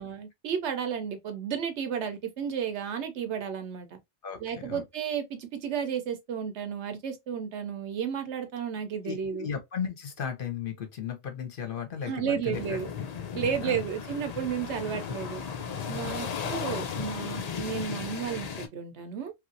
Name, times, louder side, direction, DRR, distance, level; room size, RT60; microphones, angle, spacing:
voice 1, 0.0-4.0 4.4-9.5 12.0-12.9 13.3-15.4 15.9-19.3, right 7 dB, 70° right, 0.9 m, -33 dB
voice 2, 4.2-4.8 9.0-12.6 13.6-13.8 15.6-16.4, left 7 dB, 50° left, 0.8 m, -36 dB
sound 1, 12.5-18.7, left 7 dB, 90° left, 0.3 m, -35 dB
3.0 x 2.5 x 2.5 m
omnidirectional pair, 1.3 m